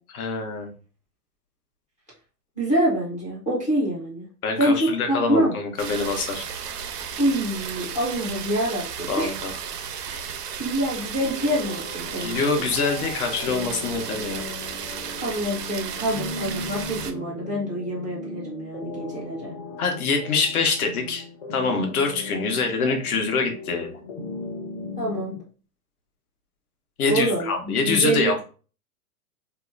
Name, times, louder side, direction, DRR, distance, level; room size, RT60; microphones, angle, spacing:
voice 1, 0.1-0.7 4.4-6.4 9.1-9.5 12.2-14.4 19.8-23.9 27.0-28.4, left 4 dB, 65° left, 4 dB, 0.9 m, -25 dB
voice 2, 2.6-4.3 4.6-5.5 7.2-9.3 10.0-10.2 10.6-12.7 15.2-19.5 25.0-25.3 27.1-28.4, right 1 dB, 10° left, -6 dB, 0.3 m, -26 dB
sound 1, 5.8-17.1, right 7 dB, 80° right, 0.6 m, -34 dB
sound 2, 11.2-25.4, left 3 dB, 40° left, 0.8 m, -38 dB
2.8 x 2.1 x 2.4 m, 0.37 s
hypercardioid pair, 125°, 47 cm